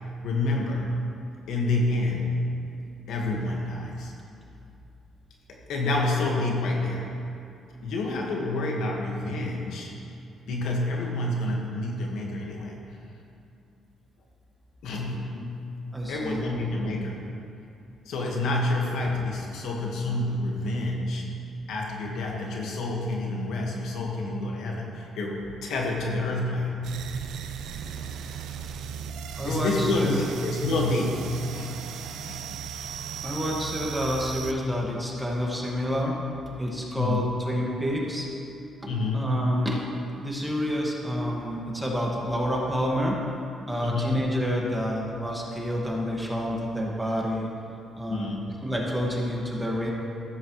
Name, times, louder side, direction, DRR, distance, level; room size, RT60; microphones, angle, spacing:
voice 1, 0.2-0.9 1.5-2.4 3.1-4.1 5.5-7.1 7.8-9.9 10.5-12.8 14.8-15.7 16.1-17.2 18.0-21.3 21.7-26.8 29.4-32.5 32.7-33.3 37.0-37.3 38.9-39.5 43.8-44.2 48.1-48.5, left 2 dB, 80° left, -1 dB, 1.6 m, -28 dB
voice 2, 15.9-16.5 29.4-30.2 33.2-36.2 36.6-38.3 38.8-39.8 40.2-43.2 43.7-47.5 48.0-48.3 48.6-49.9, equal, 5° right, -2 dB, 1.8 m, -28 dB
sound 1, 26.8-34.5, right 8 dB, 80° right, 0.5 m, -37 dB
14.0 x 9.1 x 3.2 m, 2.6 s
cardioid pair, 90°, 0 cm